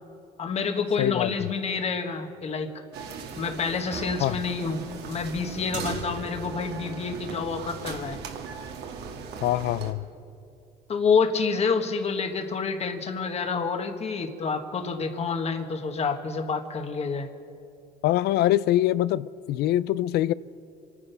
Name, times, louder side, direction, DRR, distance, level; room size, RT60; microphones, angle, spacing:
voice 1, 0.4-2.7 3.4-8.2 10.9-17.3, left 5 dB, 40° left, 1.4 m, -28 dB
voice 2, 1.0-1.5 4.2-4.4 9.4-10.1 18.0-20.3, left 14 dB, 75° left, 0.4 m, -24 dB
sound 1, 2.9-9.9, right 5 dB, 75° right, 1.7 m, -37 dB
26.0 x 9.8 x 5.6 m
cardioid pair, 110°, 17 cm